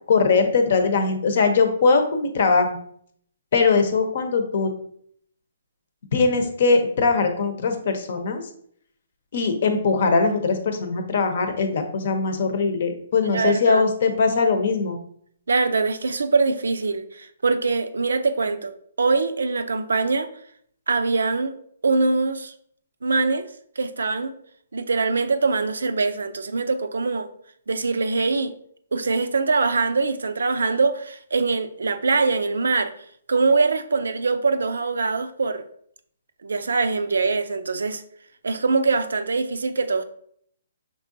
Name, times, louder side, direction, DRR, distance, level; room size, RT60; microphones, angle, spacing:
voice 1, 0.1-2.8 3.5-4.7 6.1-8.4 9.3-15.0, left 4 dB, 50° left, 0.8 m, -21 dB
voice 2, 13.3-13.8 15.5-20.3 20.9-21.5 21.8-22.5 23.0-23.4 23.8-24.3 24.7-27.3 27.7-28.5 28.9-32.9 33.3-35.6 36.4-38.0 38.4-40.0, right 4 dB, 90° right, 0.5 m, -23 dB
5.4 x 3.7 x 2.7 m
hypercardioid pair, 160°, 0 cm